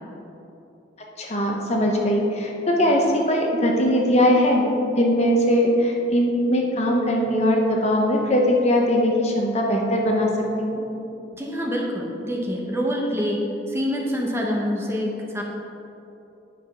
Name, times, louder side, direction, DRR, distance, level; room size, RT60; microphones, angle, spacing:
voice 1, 1.2-4.7 5.0-10.3 10.6-10.8, equal, 35° left, 0 dB, 0.9 m, -20 dB
voice 2, 11.4-13.4 13.7-15.4, equal, 15° right, -1 dB, 0.9 m, -26 dB
10.0 x 5.0 x 5.7 m, 3.0 s
head